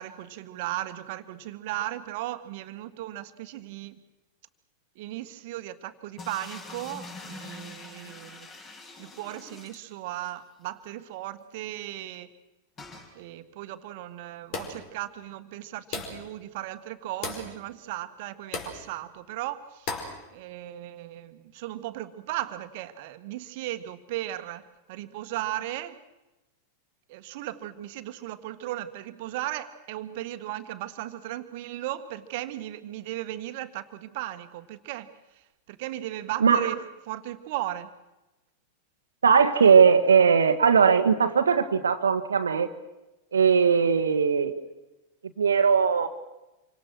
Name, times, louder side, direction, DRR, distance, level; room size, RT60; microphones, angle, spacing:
voice 1, 0.0-4.0 4.9-8.5 9.0-12.3 13.1-19.9 20.3-26.0 27.1-35.1 35.7-37.9, right 14 dB, 50° right, 10 dB, 1.6 m, -36 dB
sound 1, 6.2-10.4 10.7-10.8 11.0-11.1 12.8-13.1, left 3 dB, 25° left, 5.9 m, -44 dB
sound 2, 14.5-14.9 15.9-16.3 17.2-17.5 18.5-18.8 19.9-20.2, left 4 dB, 45° left, 5.0 m, -34 dB
voice 2, 39.2-42.7 43.3-44.6 45.4-46.1, right 6 dB, 70° right, 8 dB, 1.4 m, -19 dB
28.0 x 25.0 x 6.3 m, 1.0 s
figure-of-eight pair, 90°, 0 cm